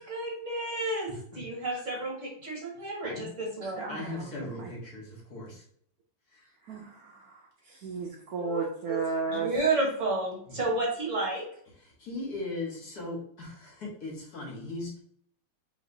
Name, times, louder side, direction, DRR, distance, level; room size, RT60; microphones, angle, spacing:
voice 1, 0.0-3.9 8.4-9.0 9.3-11.5, right 2 dB, 45° right, -2 dB, 1.6 m, -31 dB
voice 2, 1.1-1.5 3.0-3.3 3.9-5.6 6.3-6.5 10.5-10.6 11.8-15.0, left 2 dB, 55° left, -2 dB, 1.8 m, -38 dB
voice 3, 3.8-4.7 6.6-9.5, right 4 dB, 65° right, -1 dB, 1.0 m, -34 dB
4.9 x 3.5 x 2.6 m, 0.63 s
omnidirectional pair, 2.0 m